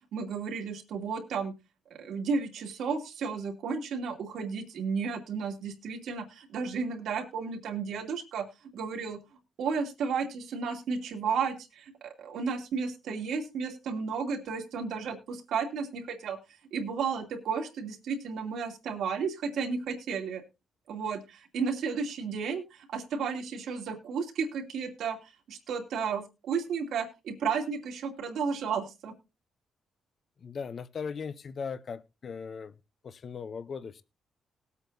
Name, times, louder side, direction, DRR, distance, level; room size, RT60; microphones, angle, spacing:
voice 1, 0.1-1.5 1.9-8.4 8.7-9.2 9.6-16.4 16.7-20.4 20.9-29.1, right 5 dB, 75° right, 3 dB, 2.6 m, -33 dB
voice 2, 30.4-32.7 33.0-34.0, left 6 dB, 45° left, 14 dB, 0.7 m, -38 dB
19.5 x 8.3 x 2.7 m, 0.28 s
cardioid pair, 135°, 0 cm